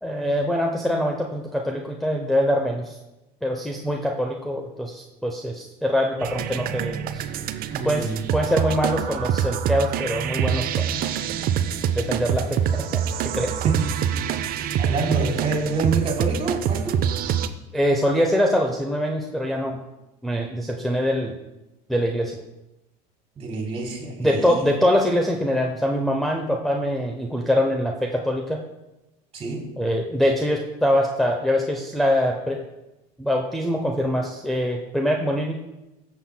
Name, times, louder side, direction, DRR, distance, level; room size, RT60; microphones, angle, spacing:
voice 1, 0.0-3.0 3.4-7.3 7.8-8.1 8.3-10.9 11.9-13.0 13.3-13.6 17.7-19.8 20.2-21.3 21.9-22.4 24.2-28.6 29.8-32.6 33.2-35.6, equal, ahead, 0 dB, 0.7 m, -23 dB
sound 1, 6.2-17.5, right 9 dB, 50° right, 0.6 m, -25 dB
voice 2, 7.7-8.2 13.6-14.0 14.8-17.0 23.4-24.6 29.3-29.7, right 3 dB, 30° right, 2 dB, 3.1 m, -27 dB
13.0 x 7.4 x 2.2 m, 0.98 s
supercardioid pair, 95°, 20 cm